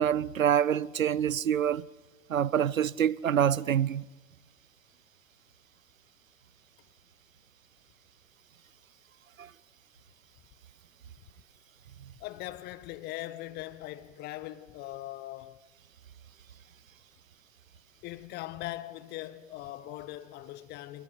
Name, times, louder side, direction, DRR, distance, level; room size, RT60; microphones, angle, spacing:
voice 1, 0.0-1.8 2.3-4.0, right 9 dB, 75° right, 0.6 m, -26 dB
voice 2, 12.2-15.6 18.0-21.0, left 15 dB, 25° left, 0.8 m, -40 dB
26.5 x 25.0 x 5.2 m
figure-of-eight pair, 100°, 41 cm